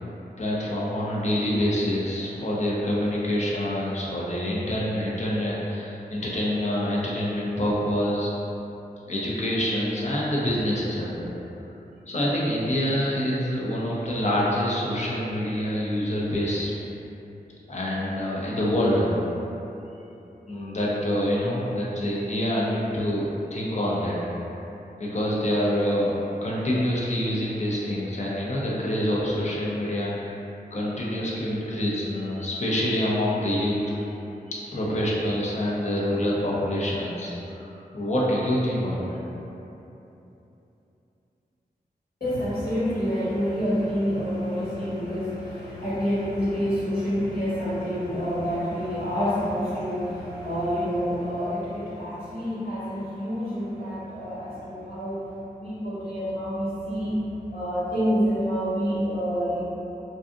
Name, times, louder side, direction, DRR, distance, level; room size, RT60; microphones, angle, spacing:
voice 1, 0.4-8.3 9.1-11.3 12.1-16.7 17.7-19.1 20.5-24.2 25.0-26.1 26.4-30.4 30.7-34.0 34.5-39.2, equal, 45° left, -5 dB, 0.6 m, -26 dB
voice 2, 42.2-55.3 55.6-59.6, equal, 70° left, -14 dB, 1.5 m, -28 dB
2.5 x 2.4 x 2.5 m, 3.0 s
cardioid pair, 50°, 16 cm